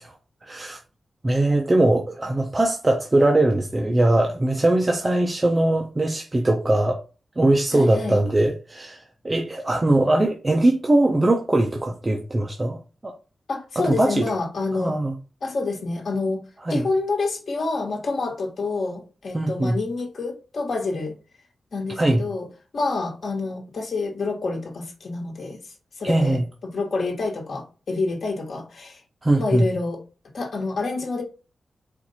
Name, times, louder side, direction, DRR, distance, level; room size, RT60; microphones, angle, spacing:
voice 1, 0.4-0.8 1.2-7.0 7.4-12.8 13.0-13.1 13.8-14.2 14.7-15.1 16.7-16.8 19.3-19.8 22.0-22.2 26.0-26.4 29.2-29.7, right 1 dB, 20° right, 0.6 m, -21 dB
voice 2, 7.7-8.2 13.5-15.0 15.4-16.4 16.7-21.2 21.7-22.5 22.7-25.6 26.0-29.0 29.4-30.0 30.3-31.2, left 3 dB, 60° left, 1.4 m, -27 dB
4.4 x 2.5 x 4.2 m
wide cardioid pair, 145°, 0 cm